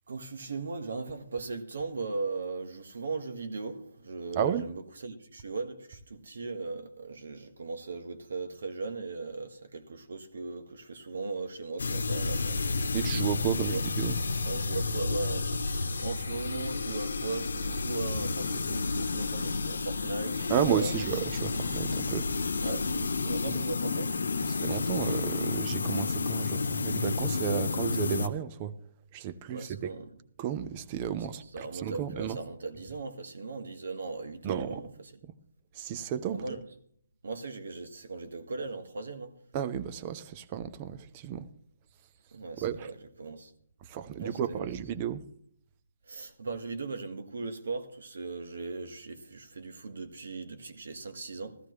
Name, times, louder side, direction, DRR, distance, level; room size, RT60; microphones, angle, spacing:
voice 1, 0.1-12.6 13.7-13.8 14.4-20.9 22.6-24.2 29.5-30.1 31.5-34.9 36.3-36.6 37.2-39.3 42.3-43.5 44.2-44.7 46.1-51.6, right 3 dB, 75° right, 1.6 m, -38 dB
voice 2, 4.3-4.6 12.9-14.2 20.5-22.3 23.5-23.6 24.4-28.8 29.1-29.9 30.4-32.4 34.4-34.8 35.2-35.3 35.7-36.4 39.5-41.5 42.6-42.9 43.8-45.2, right 9 dB, 30° right, 0.6 m, -32 dB
sound 1, 11.8-28.3, left 4 dB, 85° left, 0.9 m, -31 dB
14.5 x 14.0 x 3.2 m
hypercardioid pair, 160°, 0 cm